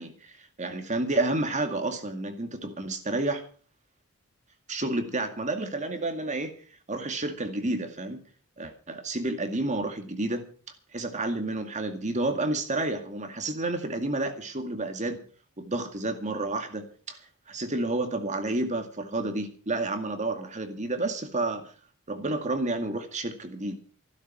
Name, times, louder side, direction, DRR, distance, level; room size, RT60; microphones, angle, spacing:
voice 1, 0.0-3.4 4.7-6.5 6.9-8.2 8.6-10.5 10.9-15.2 15.6-17.2 17.5-21.7 22.1-23.8, right 2 dB, 35° right, 6 dB, 2.2 m, -30 dB
15.0 x 12.0 x 6.1 m, 0.41 s
head